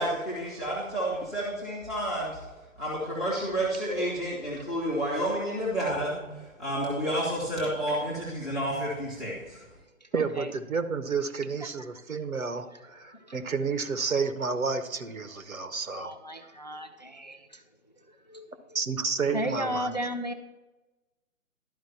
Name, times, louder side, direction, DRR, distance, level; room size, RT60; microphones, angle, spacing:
voice 1, 0.0-2.4 2.8-9.6, right 1 dB, ahead, -5 dB, 0.7 m, -30 dB
voice 2, 10.1-16.1 18.7-19.9, right 5 dB, 80° right, 9 dB, 1.0 m, -30 dB
voice 3, 12.7-13.4 15.9-17.6 18.1-18.5 19.3-20.3, equal, 35° left, 7 dB, 0.4 m, -35 dB
11.5 x 4.7 x 4.3 m, 1.1 s
figure-of-eight pair, 140°, 41 cm